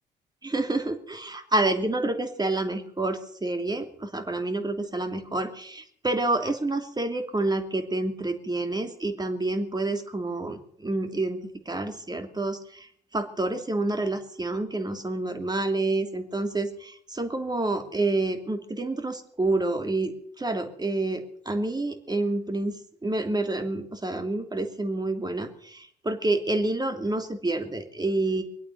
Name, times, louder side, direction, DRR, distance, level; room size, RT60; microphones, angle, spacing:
voice 1, 0.4-11.4 11.6-22.7 23.0-28.4, right 2 dB, 20° right, 5 dB, 2.9 m, -28 dB
24.5 x 8.5 x 6.7 m, 0.64 s
figure-of-eight pair, 45°, 21 cm